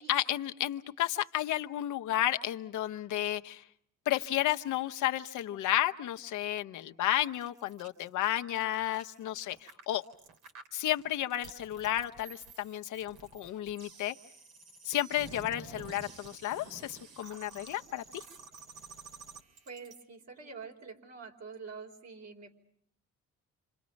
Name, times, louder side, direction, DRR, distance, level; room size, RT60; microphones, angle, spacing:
voice 1, 0.0-3.6 4.1-10.0 10.7-14.1 14.8-18.2, left 13 dB, 85° left, 7 dB, 1.0 m, -32 dB
sound 1, 7.3-20.0, right 4 dB, 85° right, 2.6 m, -51 dB
voice 2, 19.7-22.5, right 5 dB, 60° right, 2 dB, 4.7 m, -46 dB
28.0 x 27.5 x 5.3 m, 0.66 s
cardioid pair, 90°, 30 cm